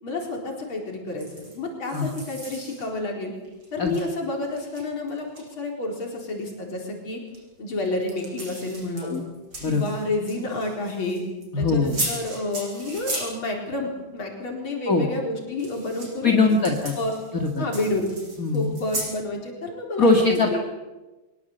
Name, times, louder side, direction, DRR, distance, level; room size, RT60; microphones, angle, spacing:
voice 1, 0.0-3.3 3.7-7.2 7.6-9.2 9.6-11.2 11.6-16.5 17.0-17.1 17.6-18.1 18.5-20.6, left 2 dB, 80° left, 0 dB, 5.1 m, -30 dB
sound 1, 1.2-1.6 1.8-2.9 3.4-4.0 4.4-5.4 7.3-7.4 7.8-11.4 11.8-13.3 15.4-19.2, right 1 dB, 80° right, 8.6 m, -36 dB
voice 2, 11.5-12.0 14.9-15.1 16.2-16.9 17.3-17.6 18.4-18.7 20.0-20.6, left 3 dB, 45° left, 1 dB, 2.4 m, -21 dB
23.5 x 22.5 x 8.0 m, 1.1 s
omnidirectional pair, 2.2 m